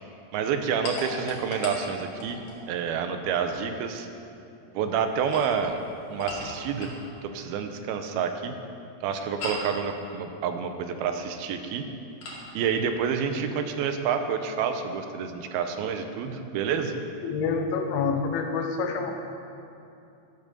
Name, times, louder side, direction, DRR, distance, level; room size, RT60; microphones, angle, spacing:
voice 1, 0.3-2.4 2.7-4.1 4.7-5.8 6.1-6.9 7.2-8.6 9.0-11.8 12.5-16.9, right 7 dB, 85° right, 7 dB, 2.7 m, -28 dB
sound 1, 0.8-2.6 5.1-7.1 9.4-9.8 12.2-12.5, left 2 dB, 60° left, 3.4 m, -37 dB
voice 2, 17.2-19.1, left 5 dB, 85° left, 4 dB, 3.0 m, -27 dB
13.5 x 8.9 x 6.6 m, 2.7 s
omnidirectional pair, 4.4 m